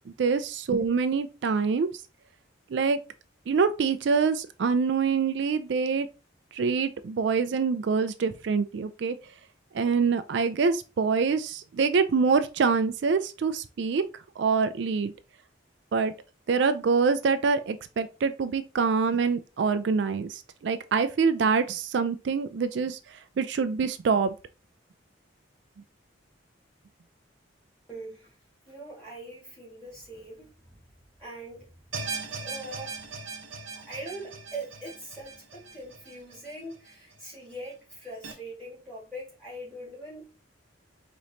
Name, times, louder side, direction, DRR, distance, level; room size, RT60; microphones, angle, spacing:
voice 1, 0.1-1.9 2.7-3.0 3.5-6.1 6.5-9.2 9.7-14.0 14.4-15.1 15.9-16.1 16.5-23.0 23.4-24.3, right 5 dB, 65° right, 0.3 m, -25 dB
voice 2, 27.9-28.4 28.7-30.8 31.2-31.7 32.4-33.1 33.7-40.3, right 1 dB, 5° left, 2.3 m, -42 dB
sound 1, 31.9-37.2 37.5-37.6 38.2-38.3, right 4 dB, 85° right, 0.9 m, -39 dB
4.9 x 3.0 x 2.7 m
head